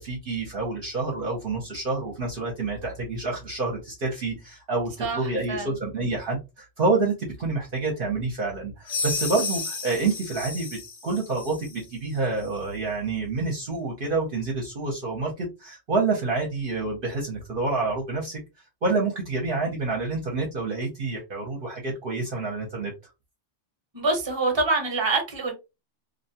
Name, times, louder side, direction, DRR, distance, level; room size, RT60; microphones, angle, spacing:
voice 1, 0.0-18.4 18.8-22.9, right 3 dB, 55° right, 0.8 m, -28 dB
voice 2, 5.0-5.8 23.9-25.5, right 3 dB, 25° right, 0.8 m, -26 dB
sound 1, 8.9-11.8, left 4 dB, 65° left, 0.9 m, -32 dB
2.5 x 2.2 x 2.7 m
omnidirectional pair, 1.2 m